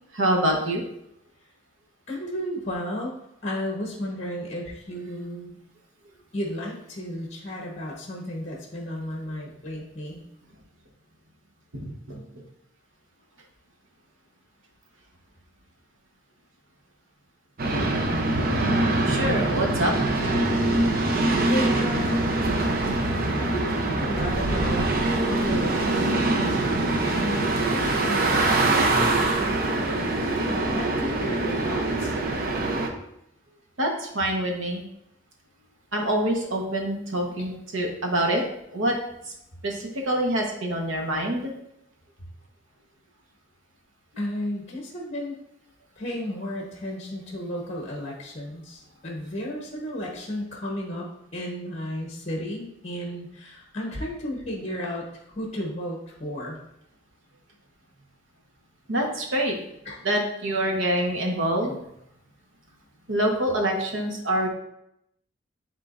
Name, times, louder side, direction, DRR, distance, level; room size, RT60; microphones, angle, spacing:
voice 1, 0.1-0.8 11.7-12.2 19.0-20.2 24.3-24.4 33.8-34.8 35.9-38.4 38.7-38.9 39.2-39.3 39.6-41.5 58.9-59.6 60.0-61.8 63.1-64.5, right 1 dB, 80° right, 1 dB, 1.2 m, -26 dB
voice 2, 2.1-3.1 3.4-5.6 6.3-10.2 21.5-22.3 23.4-30.1 30.5-32.1 37.4-37.5 44.2-45.3 46.0-51.1 51.3-56.6 59.8-60.0 61.0-61.1, equal, 35° left, -1 dB, 1.1 m, -33 dB
sound 1, 17.6-32.9, right 2 dB, 45° right, 0.7 m, -24 dB
9.9 x 3.7 x 2.5 m, 0.79 s
head